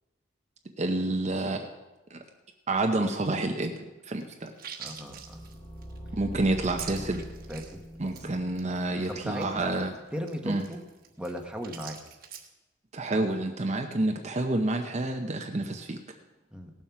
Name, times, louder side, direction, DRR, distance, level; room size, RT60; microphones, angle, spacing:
voice 1, 0.8-1.7 2.1-2.2 2.7-4.5 6.1-7.2 8.0-9.9 10.4-10.6 12.9-16.0, right 2 dB, 40° right, 4 dB, 0.7 m, -29 dB
sound 1, 4.1-7.8 8.1-8.2 8.6-8.7 8.9-12.5, right 8 dB, 55° right, 1.3 m, -44 dB
voice 2, 4.8-5.4 7.5-7.8 8.1-8.3 9.1-9.8 10.1-10.8 11.2-12.0 16.5-16.7, equal, 5° right, 2 dB, 1.1 m, -37 dB
sound 2, 5.0-9.9, equal, 35° left, 1.9 m, -43 dB
17.5 x 7.3 x 5.8 m, 1.1 s
head